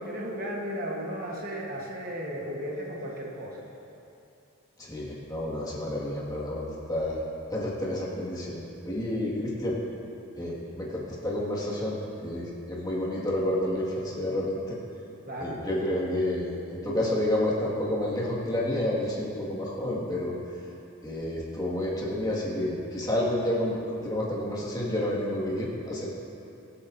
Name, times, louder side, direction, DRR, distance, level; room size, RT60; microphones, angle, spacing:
voice 1, 0.0-3.6 15.3-15.6, equal, 40° right, -2 dB, 1.2 m, -35 dB
voice 2, 4.8-7.2 7.5-9.8 10.3-14.8 15.4-20.3 21.0-26.1, left 1 dB, 15° left, -6 dB, 1.8 m, -30 dB
21.5 x 8.4 x 2.6 m, 2.8 s
head